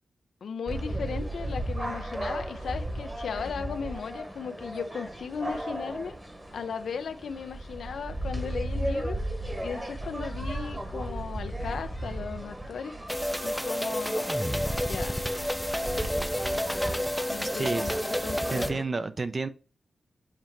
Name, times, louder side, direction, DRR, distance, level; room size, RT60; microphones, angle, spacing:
voice 1, 0.4-6.1 6.5-9.2 9.6-13.0 13.4-14.3 14.8-15.2 17.3-18.8, left 6 dB, 85° left, 0.6 m, -36 dB
sound 1, 0.7-18.8, right 1 dB, 20° right, 1.3 m, -35 dB
sound 2, 13.1-18.7, equal, ahead, 0.5 m, -30 dB
voice 2, 18.5-19.5, right 3 dB, 40° right, 0.6 m, -30 dB
7.4 x 2.9 x 4.5 m
cardioid pair, 80°, 0 cm